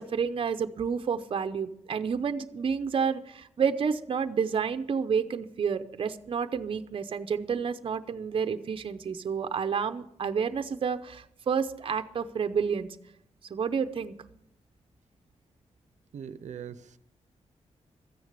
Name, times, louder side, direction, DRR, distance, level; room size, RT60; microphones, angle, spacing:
voice 1, 0.0-12.9 13.5-14.2, right 6 dB, 45° right, 9 dB, 0.7 m, -30 dB
voice 2, 16.1-17.0, right 8 dB, 85° right, 13 dB, 0.7 m, -41 dB
14.0 x 9.6 x 6.7 m, 0.74 s
wide cardioid pair, 170°, 12 cm